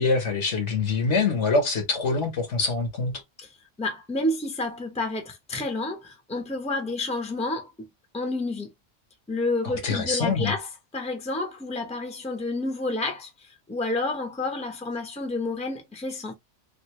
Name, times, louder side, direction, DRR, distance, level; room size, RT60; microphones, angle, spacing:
voice 1, 0.0-3.2 9.6-10.5, left 4 dB, 70° left, 1.5 m, -25 dB
voice 2, 3.8-7.9 8.1-8.7 9.3-10.7 10.9-13.3 13.7-16.3, left 2 dB, 5° left, 0.8 m, -29 dB
3.4 x 2.6 x 3.0 m
omnidirectional pair, 1.2 m